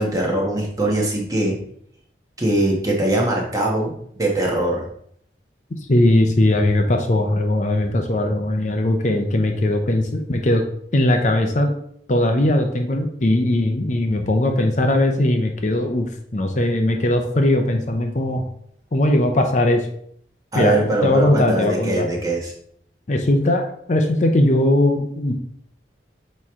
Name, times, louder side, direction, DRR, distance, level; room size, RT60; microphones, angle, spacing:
voice 1, 0.0-1.6 2.4-4.8 20.5-22.5, right 1 dB, 20° right, -2 dB, 1.3 m, -21 dB
voice 2, 5.9-10.6 10.9-11.7 12.1-18.5 18.9-19.9 20.5-22.1 23.1-25.3, left 1 dB, 40° left, 4 dB, 0.6 m, -19 dB
8.6 x 3.1 x 3.6 m, 0.67 s
head